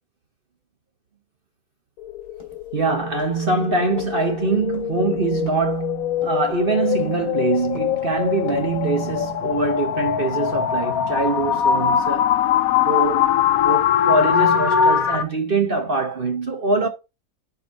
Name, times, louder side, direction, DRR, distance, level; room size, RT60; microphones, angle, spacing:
sound 1, 2.0-15.2, left 8 dB, 75° left, 1.1 m, -22 dB
sound 2, 2.4-2.8 3.2-3.5 4.0-4.2 4.7-5.0 5.5-5.8 6.2-6.5 7.0-7.3 7.7-8.0 8.5-8.8 9.2-9.5, left 2 dB, 30° left, 3.0 m, -44 dB
voice 1, 2.7-12.3 12.8-13.3 13.6-16.9, right 3 dB, 40° right, 1.3 m, -23 dB
6.0 x 5.4 x 3.9 m
omnidirectional pair, 1.6 m